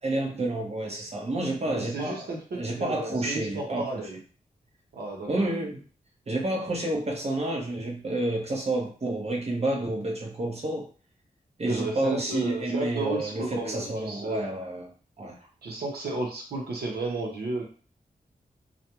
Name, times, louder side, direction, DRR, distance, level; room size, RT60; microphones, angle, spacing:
voice 1, 0.0-4.1 5.3-5.8 6.3-10.9 11.6-14.9 15.2-15.4, right 2 dB, 40° right, 1 dB, 0.8 m, -29 dB
voice 2, 1.6-4.2 4.9-5.5 11.7-14.5 15.6-17.6, right 2 dB, 90° right, 0 dB, 0.8 m, -33 dB
2.5 x 2.2 x 2.9 m, 0.39 s
cardioid pair, 55°, 16 cm